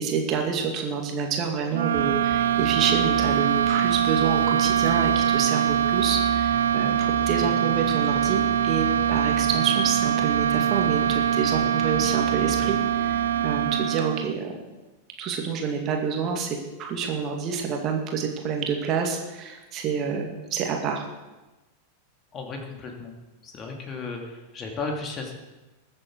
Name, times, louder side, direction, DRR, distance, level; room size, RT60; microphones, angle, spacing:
voice 1, 0.0-14.5 15.2-21.0, right 6 dB, 35° right, 2 dB, 2.2 m, -28 dB
sound 1, 1.7-14.4, right 9 dB, 65° right, 0.4 m, -23 dB
sound 2, 1.9-13.9, right 1 dB, 10° left, 2.7 m, -38 dB
voice 2, 22.3-23.1 23.4-25.3, left 3 dB, 30° left, 2 dB, 2.5 m, -34 dB
21.5 x 7.7 x 4.7 m, 1.1 s
figure-of-eight pair, 90°, 0 cm